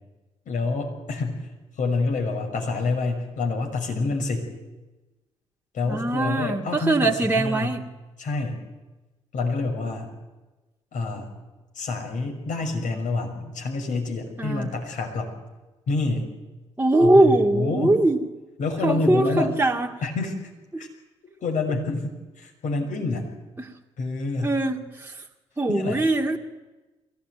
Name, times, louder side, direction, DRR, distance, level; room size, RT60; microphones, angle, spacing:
voice 1, 0.5-1.5 1.8-4.5 5.7-7.7 8.2-8.6 9.3-10.1 10.9-11.3 11.7-15.4 15.9-16.3 17.0-17.9 18.6-19.5 20.0-20.3 20.8-20.9 21.4-22.1 22.4-23.3 24.0-24.5 25.7-26.0, left 3 dB, 55° left, 3 dB, 6.1 m, -27 dB
voice 2, 5.9-7.8 14.4-14.7 16.8-18.2 18.8-20.0 20.7-20.8 23.6-23.7 24.4-25.2 25.6-26.4, right 2 dB, 15° right, 0 dB, 2.3 m, -21 dB
23.0 x 17.0 x 9.4 m, 1.2 s
hypercardioid pair, 45°, 15 cm